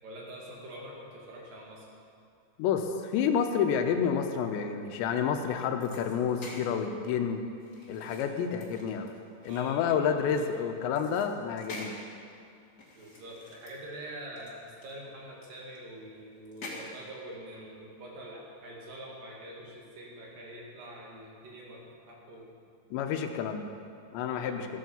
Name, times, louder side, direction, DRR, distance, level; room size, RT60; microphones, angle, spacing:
voice 1, 0.0-1.9 9.5-9.9 10.3-10.7 12.9-22.5 24.3-24.6, right 1 dB, 55° right, -3 dB, 3.6 m, -45 dB
voice 2, 2.6-7.4 7.9-9.1 9.4-12.1 22.9-23.7 24.1-24.7, left 7 dB, 90° left, 6 dB, 3.2 m, -29 dB
sound 1, 5.8-6.7 7.6-10.6 11.0-12.0 12.8-14.0 14.4-14.5 14.8-15.8 16.4-17.0, left 2 dB, 35° left, 2.0 m, -46 dB
15.0 x 9.3 x 7.1 m, 2.6 s
omnidirectional pair, 5.0 m